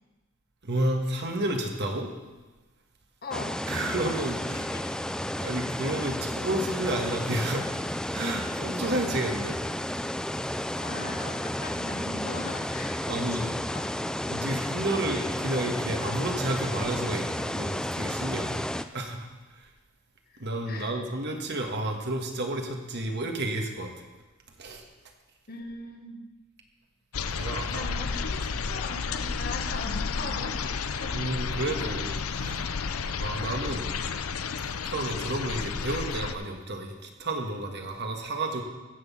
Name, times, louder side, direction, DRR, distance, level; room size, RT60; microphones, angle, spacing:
voice 1, 0.6-2.1 3.7-4.7 5.3-7.7 8.1-9.6 13.1-13.5 14.3-18.6 18.9-19.7 20.4-24.1 24.6-24.8 27.3-27.9 31.1-32.7 33.2-33.9 34.8-38.6, right 1 dB, 55° right, 3 dB, 1.6 m, -31 dB
voice 2, 3.2-3.9 4.5-4.8 10.8-13.9 20.3-21.0 25.5-26.2 27.7-31.3, left 3 dB, 45° left, 3 dB, 1.6 m, -40 dB
sound 1, 3.3-18.8, left 1 dB, 5° left, 0.3 m, -32 dB
sound 2, 27.1-36.3, left 5 dB, 90° left, 0.7 m, -32 dB
15.5 x 6.3 x 7.2 m, 1.2 s
head